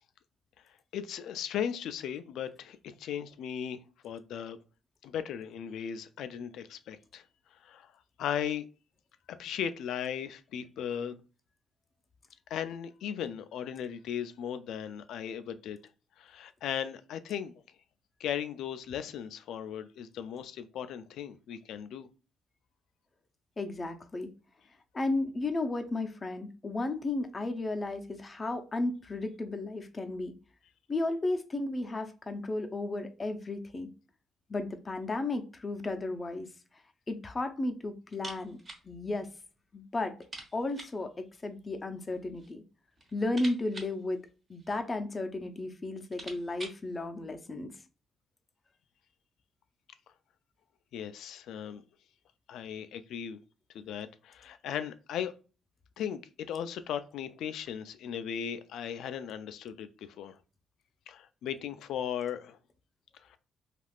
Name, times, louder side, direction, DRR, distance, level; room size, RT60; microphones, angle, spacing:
voice 1, 0.9-4.6 5.0-7.2 7.5-7.9 8.2-8.7 9.3-11.2 12.5-15.8 16.2-17.5 18.2-22.1 50.9-51.8 52.5-53.4 53.7-55.3 56.0-60.4 61.1-62.6 63.2-63.4, left 9 dB, 80° left, 0.3 m, -37 dB
voice 2, 23.6-24.3 24.9-30.3 30.9-33.9 34.5-36.5 37.1-38.6 38.8-39.3 39.7-40.2 40.5-42.6 43.1-44.2 44.5-47.7, left 2 dB, 30° left, 0.5 m, -34 dB
sound 1, 38.1-38.9 39.1-39.2 39.6-39.7 40.2-41.1 42.0-42.6 42.9-44.9 45.6-45.7 45.9-46.9, right 2 dB, 35° right, 1.0 m, -47 dB
3.4 x 2.4 x 2.3 m
cardioid pair, 90°, 0 cm